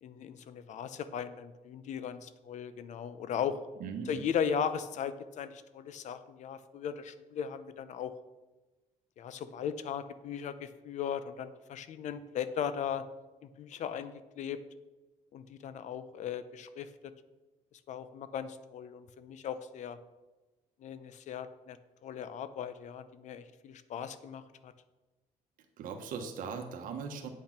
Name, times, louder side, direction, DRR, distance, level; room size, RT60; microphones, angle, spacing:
voice 1, 0.0-3.6 4.1-8.1 9.2-13.0 13.4-14.6 15.3-16.9 17.9-20.0 20.8-21.8 22.0-24.7, left 8 dB, 60° left, 13 dB, 0.8 m, -37 dB
voice 2, 3.8-4.2 25.8-27.3, right 6 dB, 90° right, 4 dB, 1.3 m, -39 dB
8.7 x 8.7 x 5.9 m, 1.1 s
cardioid pair, 165°, 14 cm